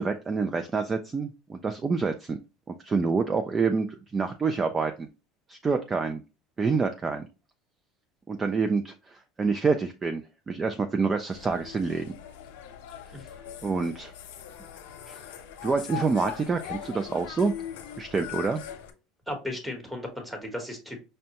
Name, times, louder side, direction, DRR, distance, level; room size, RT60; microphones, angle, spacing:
voice 1, 0.0-2.4 2.7-5.1 5.5-6.2 6.6-7.3 8.3-12.1 13.6-14.1 15.1-15.2 15.6-17.5 18.0-18.6, right 4 dB, 20° right, 7 dB, 0.3 m, -27 dB
sound 1, 11.3-18.9, left 10 dB, 90° left, 0.7 m, -41 dB
voice 2, 19.3-21.0, left 1 dB, 5° right, 2 dB, 1.1 m, -35 dB
5.2 x 2.1 x 2.8 m, 0.30 s
supercardioid pair, 125°, 0 cm